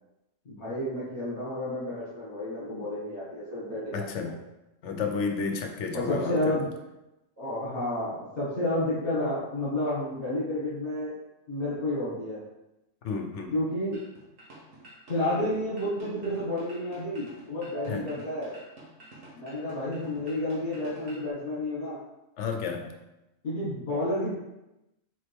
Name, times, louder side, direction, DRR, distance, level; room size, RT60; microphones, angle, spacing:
voice 1, 0.5-4.3 5.9-6.7 7.4-11.1 11.5-12.4 13.5-14.0 15.1-18.5 19.3-22.0 23.4-24.3, left 1 dB, 45° left, -9 dB, 1.9 m, -30 dB
voice 2, 3.9-4.3 4.8-6.6 13.0-13.5 17.9-18.0 22.4-22.9, left 5 dB, 65° left, 4 dB, 1.0 m, -31 dB
sound 1, 13.9-21.3, right 1 dB, 80° right, 1.7 m, -50 dB
7.2 x 3.7 x 3.5 m, 0.95 s
omnidirectional pair, 1.3 m